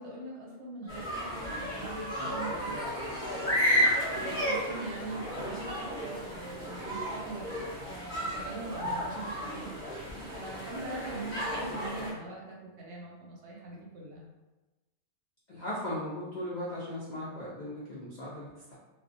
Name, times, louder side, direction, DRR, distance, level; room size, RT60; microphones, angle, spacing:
voice 1, 0.0-2.7 4.1-9.7 10.3-14.3, right 2 dB, 65° right, -4 dB, 0.8 m, -42 dB
sound 1, 0.9-12.1, equal, 10° left, 0.7 m, -33 dB
voice 2, 15.5-18.8, left 1 dB, 80° left, -7 dB, 0.4 m, -37 dB
2.3 x 2.1 x 2.5 m, 1.1 s
omnidirectional pair, 1.4 m